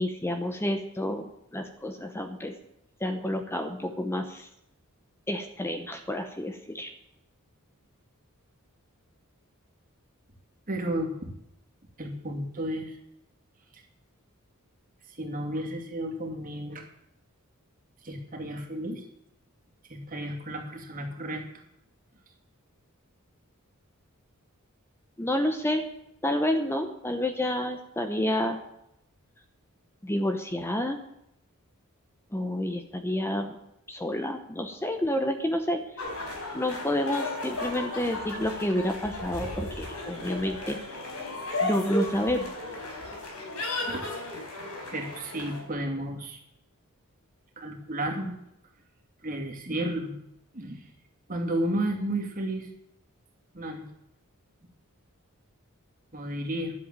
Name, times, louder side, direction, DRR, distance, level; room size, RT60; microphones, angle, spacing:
voice 1, 0.0-2.5 3.0-4.5 5.3-6.9 25.2-25.9 26.2-28.6 30.0-31.0 32.3-33.6 33.9-35.8 36.5-40.8 41.6-42.5, left 1 dB, 10° left, 6 dB, 0.9 m, -29 dB
voice 2, 10.7-11.3 12.0-13.0 15.2-16.9 18.0-19.0 19.9-21.6 43.9-44.1 44.9-46.4 47.6-48.3 49.2-50.1 50.5-50.8 51.3-52.7 53.5-53.9 56.1-56.7, right 1 dB, 40° right, 1 dB, 2.5 m, -32 dB
sound 1, 36.0-45.6, left 2 dB, 90° left, 4.4 m, -35 dB
11.5 x 7.8 x 8.9 m, 0.81 s
head